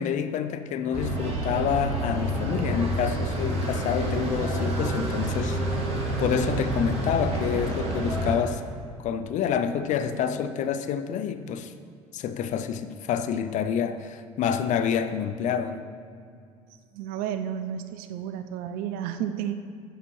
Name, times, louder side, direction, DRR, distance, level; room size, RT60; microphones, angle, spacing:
voice 1, 0.0-5.6 6.2-8.6 9.0-11.7 12.1-15.9, left 8 dB, 45° left, 0.5 m, -28 dB
sound 1, 0.9-8.4, right 1 dB, 35° right, 1.8 m, -28 dB
voice 2, 16.9-19.5, right 9 dB, 55° right, 0.4 m, -32 dB
10.0 x 6.7 x 3.0 m
hypercardioid pair, 65°, 18 cm